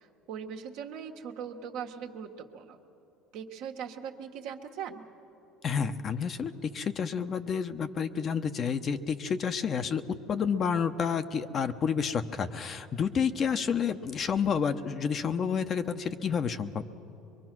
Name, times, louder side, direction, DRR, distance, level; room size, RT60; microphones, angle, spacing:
voice 1, 0.0-2.8 3.3-5.0, right 7 dB, 70° right, 2 dB, 1.5 m, -40 dB
voice 2, 5.6-10.0 10.3-16.8, left 6 dB, 40° left, 9 dB, 0.9 m, -30 dB
23.5 x 22.5 x 6.1 m, 2.9 s
supercardioid pair, 90°, 0 cm